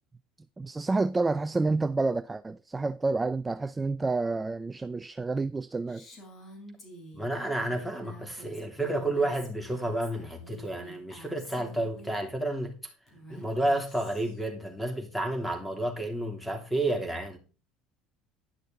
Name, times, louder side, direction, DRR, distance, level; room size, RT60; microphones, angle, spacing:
voice 1, 0.6-6.1, right 3 dB, 15° right, 0.5 m, -29 dB
Female speech woman speaking, 5.9-12.2 13.1-14.4, right 1 dB, 40° left, 4.4 m, -49 dB
voice 2, 7.1-12.7 13.3-17.4, right 1 dB, ahead, 3.2 m, -31 dB
11.0 x 6.5 x 4.0 m
supercardioid pair, 85°, 0 cm